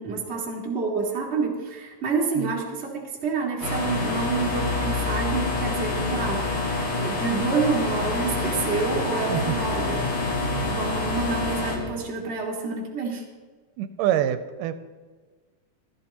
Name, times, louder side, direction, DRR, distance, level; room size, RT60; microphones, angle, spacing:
voice 1, 0.0-6.7 7.0-10.0 10.6-13.3, right 4 dB, 25° right, -2 dB, 1.6 m, -28 dB
sound 1, 3.6-11.8, left 3 dB, 50° left, 2.6 m, -27 dB
sound 2, 3.6-11.9, left 1 dB, 35° left, 3.2 m, -45 dB
sound 3, 4.0-11.9, left 3 dB, 85° left, 3.0 m, -39 dB
voice 2, 13.8-14.8, right 11 dB, 85° right, 10 dB, 2.1 m, -26 dB
14.5 x 13.0 x 3.0 m, 1.4 s
omnidirectional pair, 3.7 m